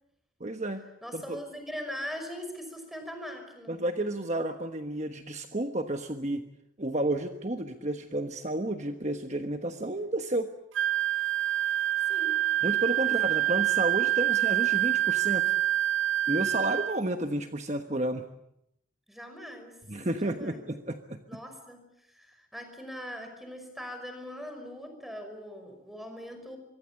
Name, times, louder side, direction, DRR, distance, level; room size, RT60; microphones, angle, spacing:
voice 1, 0.4-0.8 1.1-1.4 3.7-6.4 6.8-10.5 12.6-15.6 16.3-18.3 19.9-21.2, right 1 dB, 35° right, 6 dB, 1.3 m, -31 dB
voice 2, 1.0-3.8 10.0-10.1 12.1-12.5 13.0-13.5 19.1-19.8 20.2-20.7 21.3-26.6, equal, ahead, 6 dB, 5.4 m, -41 dB
Wind instrument woodwind instrument, 10.7-17.0, right 13 dB, 85° right, 1.6 m, -26 dB
25.5 x 23.5 x 8.5 m, 0.81 s
head